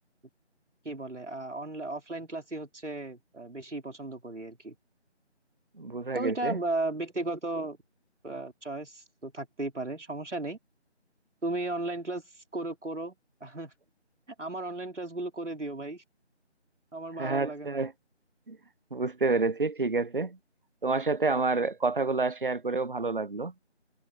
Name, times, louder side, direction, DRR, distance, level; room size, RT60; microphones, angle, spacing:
voice 1, 0.8-4.8 6.1-7.8 8.2-10.6 11.4-13.1 13.4-13.7 14.4-16.0 16.9-17.8, right 2 dB, 85° right, 4.2 m, -35 dB
voice 2, 5.8-6.6 17.2-17.9 18.5-18.6 18.9-20.4 20.8-23.5, right 3 dB, 50° right, 0.4 m, -28 dB
figure-of-eight pair, 175°, 35 cm